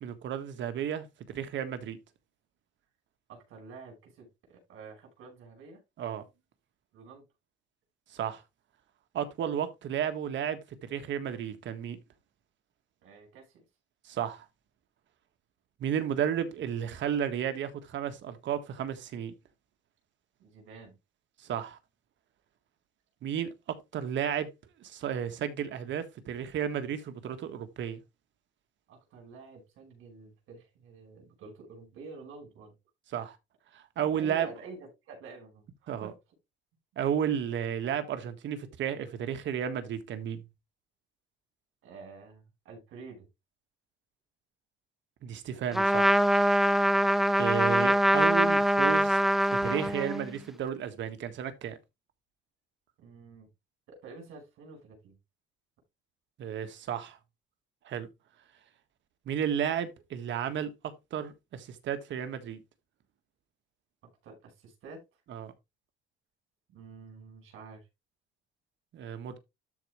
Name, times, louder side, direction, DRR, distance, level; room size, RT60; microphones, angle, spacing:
voice 1, 0.0-2.0 6.0-6.2 8.1-8.4 9.1-10.6 10.9-12.0 14.1-14.4 15.8-19.3 21.4-21.8 23.2-24.5 24.8-28.0 33.1-33.4 33.7-34.5 35.9-36.1 37.0-40.4 45.2-46.1 47.4-49.2 49.5-51.8 56.4-57.2 57.8-58.1 59.3-60.7 61.1-62.6 65.3-65.5 68.9-69.4, right 9 dB, 65° right, 1.6 m, -33 dB
voice 2, 3.3-5.8 6.9-7.2 13.0-13.7 20.4-21.0 28.9-32.7 34.0-36.2 41.8-43.3 53.0-53.5 53.9-55.2 64.2-65.0 66.7-67.9, right 4 dB, 80° right, 5.4 m, -49 dB
Trumpet, 45.7-50.3, equal, ahead, 0.4 m, -24 dB
13.0 x 4.6 x 3.1 m
cardioid pair, 130°, 21 cm